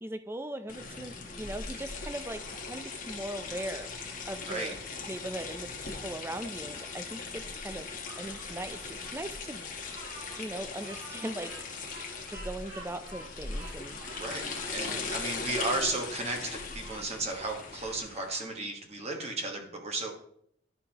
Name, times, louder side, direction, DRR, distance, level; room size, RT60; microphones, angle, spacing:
voice 1, 0.0-4.8 5.1-7.9 8.2-9.6 10.4-11.5 12.3-14.0 14.8-15.1 15.8-15.9, right 1 dB, 10° right, 9 dB, 0.4 m, -39 dB
sound 1, 0.7-18.4, left 4 dB, 45° left, 1.1 m, -39 dB
voice 2, 4.4-4.7 14.2-20.1, right 2 dB, 35° right, 2 dB, 1.3 m, -34 dB
Bird vocalization bird call bird song, 8.0-17.0 17.5-18.5, right 1 dB, 55° right, 2.8 m, -51 dB
11.0 x 5.7 x 2.9 m, 0.69 s
head